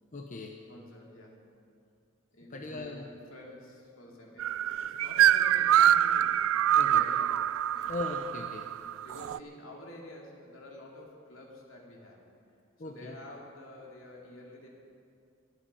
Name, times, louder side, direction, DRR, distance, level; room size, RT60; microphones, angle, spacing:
voice 1, 0.1-0.6 2.5-3.1 6.8-7.0 7.9-8.7 12.8-13.1, left 3 dB, 40° left, 2 dB, 0.9 m, -38 dB
voice 2, 0.7-1.4 2.3-3.0 3.3-7.4 7.7-7.9 9.0-12.2 12.8-14.7, left 1 dB, 80° left, -1 dB, 2.8 m, -49 dB
sound 1, 4.4-9.4, right 11 dB, 80° right, 0.3 m, -25 dB
22.0 x 8.0 x 5.5 m, 2.4 s
head